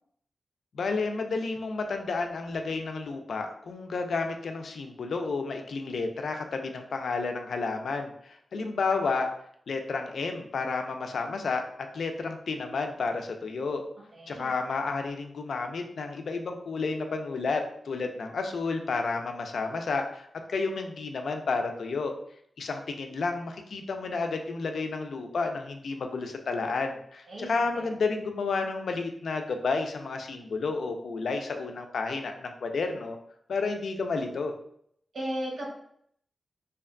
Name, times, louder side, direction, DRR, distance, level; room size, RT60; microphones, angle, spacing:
voice 1, 0.7-9.3 9.7-11.6 11.9-13.8 14.3-22.1 22.6-33.2 33.5-34.5, left 4 dB, 90° left, 5 dB, 0.3 m, -31 dB
voice 2, 14.1-14.5 27.3-27.5 27.7-27.9 35.1-35.7, equal, 85° right, -3 dB, 0.9 m, -35 dB
2.5 x 2.2 x 2.4 m, 0.67 s
wide cardioid pair, 120°, 0 cm